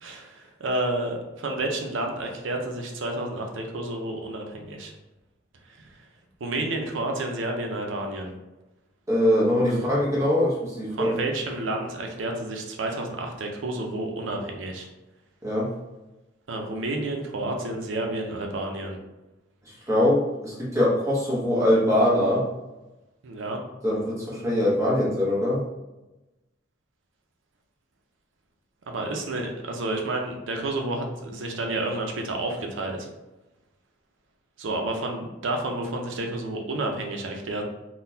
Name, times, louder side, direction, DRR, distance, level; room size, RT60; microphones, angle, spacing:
voice 1, 0.0-4.9 5.7-6.0 6.4-8.3 9.7-9.9 10.9-14.9 16.5-19.0 23.2-23.6 28.9-33.1 34.6-37.6, right 2 dB, 80° right, 2 dB, 0.6 m, -30 dB
voice 2, 9.1-11.1 15.4-15.7 19.9-22.5 23.8-25.6, left 1 dB, 15° right, -6 dB, 0.9 m, -22 dB
3.8 x 2.2 x 2.7 m, 1.0 s
head